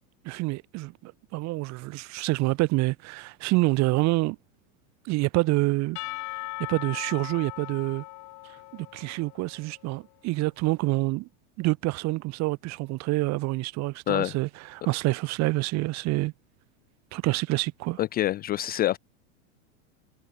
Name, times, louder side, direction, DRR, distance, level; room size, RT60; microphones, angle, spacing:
voice 1, 0.2-4.4 5.0-6.0 6.7-8.0 8.4-11.3 11.6-16.3 17.1-18.0, right 21 dB, 40° right, 1.1 m, -27 dB
Percussion / Church bell, 6.0-9.8, left 21 dB, 45° left, 2.8 m, -39 dB
voice 2, 18.0-19.0, left 14 dB, 25° left, 0.4 m, -26 dB
supercardioid pair, 125°, 39 cm